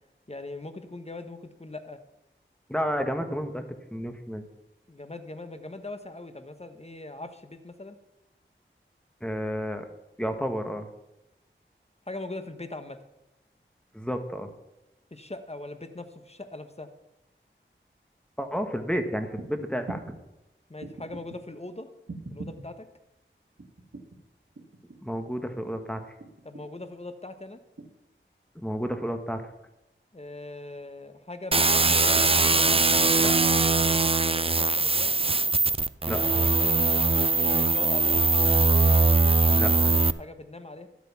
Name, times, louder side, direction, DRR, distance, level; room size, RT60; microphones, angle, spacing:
voice 1, 0.3-2.0 4.9-8.0 12.1-13.0 15.1-16.9 20.7-21.9 22.3-22.8 26.4-27.6 30.1-32.2 34.2-35.1 37.5-38.2 40.2-40.9, left 2 dB, 30° left, 8 dB, 1.1 m, -40 dB
voice 2, 2.7-3.6 3.9-4.5 9.2-9.9 10.2-10.9 13.9-14.5 18.4-20.0 25.0-26.0 28.5-29.4 33.2-33.4 36.1-36.5 39.5-40.0, equal, 5° left, 6 dB, 1.4 m, -31 dB
sound 1, 19.4-19.5 19.9-20.2 20.8-21.4 22.1-22.7 23.6-24.2 24.6-25.2 26.2-26.9 27.8-27.9, right 3 dB, 80° right, 2.0 m, -41 dB
sound 2, 31.5-40.1, right 3 dB, 30° right, 0.4 m, -21 dB
12.0 x 8.4 x 5.7 m, 0.90 s
wide cardioid pair, 45°, 20 cm